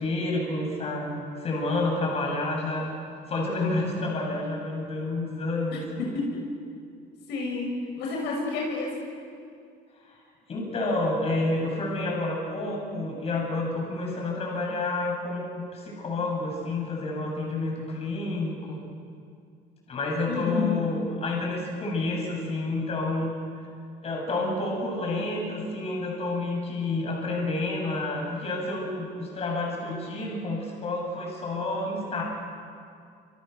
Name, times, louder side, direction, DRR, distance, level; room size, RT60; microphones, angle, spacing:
voice 1, 0.0-2.9 3.3-6.0 10.0-10.2 10.5-18.8 19.9-23.3 24.0-32.2, left 2 dB, 35° left, -1 dB, 8.0 m, -29 dB
voice 2, 6.0-6.4 7.3-8.9 20.3-20.8, left 4 dB, 70° left, -1 dB, 6.6 m, -29 dB
28.0 x 28.0 x 7.0 m, 2.3 s
cardioid pair, 150°, 18 cm